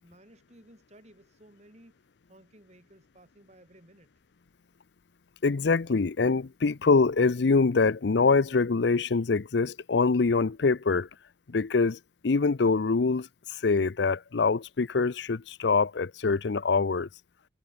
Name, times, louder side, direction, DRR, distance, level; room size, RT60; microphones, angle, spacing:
voice 1, 0.0-2.0 2.3-4.1, right 1 dB, 35° right, 5.5 m, -56 dB
voice 2, 5.4-11.1 11.5-17.1, left 4 dB, 70° left, 0.6 m, -24 dB
head